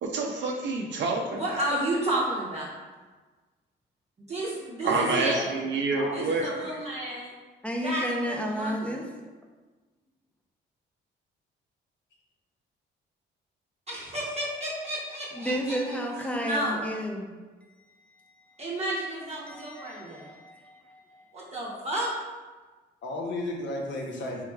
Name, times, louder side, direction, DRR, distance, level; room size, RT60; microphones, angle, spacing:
voice 1, 0.0-1.6 4.8-6.5, right 3 dB, 65° right, 1 dB, 0.5 m, -28 dB
voice 2, 1.3-2.7 4.3-5.5 6.1-7.3 7.8-9.0 13.9-16.0 16.4-16.9 18.6-20.3 21.3-22.1, right 1 dB, 35° right, -5 dB, 0.7 m, -31 dB
voice 3, 4.8-5.5 5.9-6.4 23.0-24.5, left 1 dB, 65° left, 1 dB, 0.7 m, -34 dB
voice 4, 7.6-9.1 15.4-17.3 19.5-21.5, equal, 5° left, 1 dB, 0.4 m, -32 dB
3.6 x 3.0 x 2.2 m, 1.3 s
cardioid pair, 90°, 20 cm